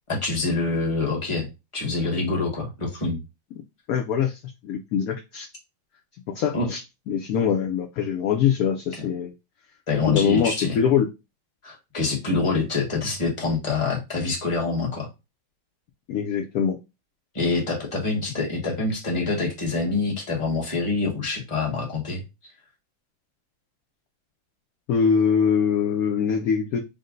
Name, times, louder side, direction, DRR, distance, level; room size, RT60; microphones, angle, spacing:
voice 1, 0.1-1.5 1.7-3.2 6.5-6.7 9.9-10.8 11.6-15.1 17.3-22.2, left 3 dB, 20° left, 1.2 m, -26 dB
voice 2, 3.9-5.5 6.3-6.8 7.1-9.3 10.0-11.1 16.1-16.8 24.9-26.8, left 7 dB, 70° left, 0.9 m, -23 dB
5.2 x 2.1 x 3.8 m
omnidirectional pair, 2.0 m